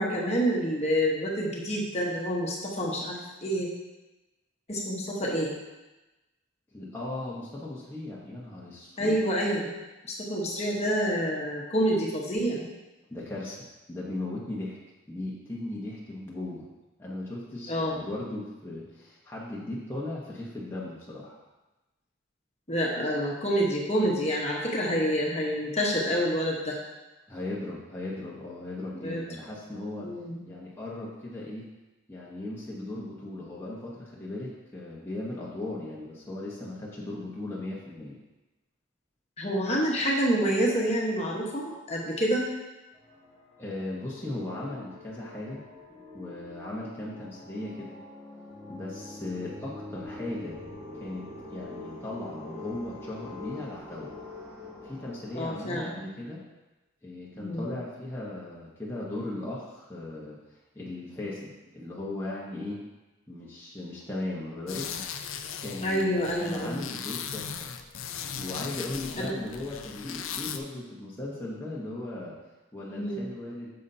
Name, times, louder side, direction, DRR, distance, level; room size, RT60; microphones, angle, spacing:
voice 1, 0.0-3.7 4.7-5.5 9.0-9.7 10.1-12.6 17.7-18.0 22.7-26.7 29.0-29.2 30.0-30.4 39.4-42.4 55.3-56.1 57.3-57.7 65.8-66.8 69.2-69.3 72.8-73.2, equal, 30° left, -3 dB, 1.2 m, -28 dB
voice 2, 6.7-9.2 13.1-14.8 15.1-16.7 17.0-21.4 27.3-30.1 30.5-31.7 32.1-38.2 43.6-45.6 46.1-48.0 48.7-50.6 50.9-54.1 54.8-56.4 57.0-60.4 60.7-62.8 63.3-64.9 65.6-67.7 68.3-72.4 72.7-73.7, left 2 dB, 10° left, -6 dB, 1.1 m, -37 dB
sound 1, 42.9-55.5, left 2 dB, 20° right, 1.9 m, -44 dB
sound 2, 64.7-70.6, left 7 dB, 85° left, 0.5 m, -38 dB
9.5 x 6.7 x 2.8 m, 1.1 s
head